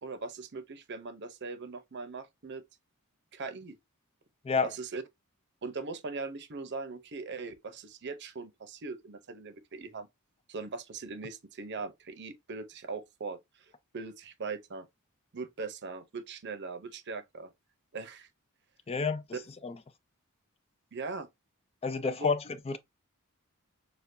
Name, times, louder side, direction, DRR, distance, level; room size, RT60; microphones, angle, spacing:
voice 1, 0.0-2.6 3.3-3.8 4.6-5.0 5.6-10.1 10.5-13.4 13.9-14.9 15.3-17.5 17.9-18.3 20.9-21.3 22.0-22.3, right 4 dB, 50° right, 0.7 m, -40 dB
voice 2, 18.9-19.2 19.6-19.8 21.8-22.8, left 4 dB, 25° left, 0.4 m, -29 dB
6.5 x 2.3 x 2.6 m
head